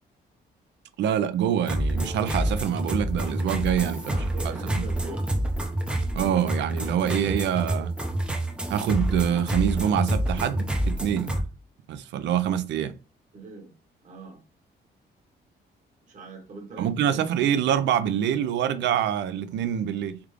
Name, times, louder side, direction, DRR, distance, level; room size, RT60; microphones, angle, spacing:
voice 1, 1.0-4.8 6.1-7.9 8.7-11.4 11.9-12.9 16.8-20.2, right 9 dB, 90° right, 0.4 m, -25 dB
sound 1, 1.7-11.4, right 1 dB, 5° right, 0.5 m, -28 dB
voice 2, 4.0-5.3 13.3-13.7 14.0-14.4 16.0-17.3, right 2 dB, 45° right, 1.1 m, -42 dB
3.4 x 2.4 x 3.2 m
cardioid pair, 180°, 18 cm